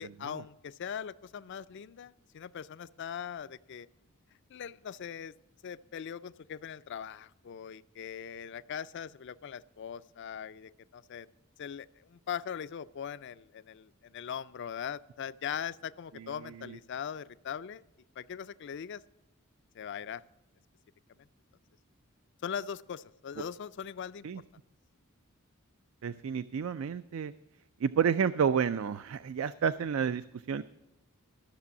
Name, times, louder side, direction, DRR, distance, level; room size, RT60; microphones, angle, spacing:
voice 1, 0.0-3.9 4.5-5.3 5.6-11.3 11.6-17.8 18.2-19.0 19.7-20.2 22.4-24.3, left 8 dB, 55° left, 16 dB, 0.4 m, -40 dB
voice 2, 26.0-27.3 27.8-30.6, right 7 dB, 70° right, 14 dB, 0.4 m, -30 dB
13.5 x 6.8 x 7.0 m, 0.93 s
head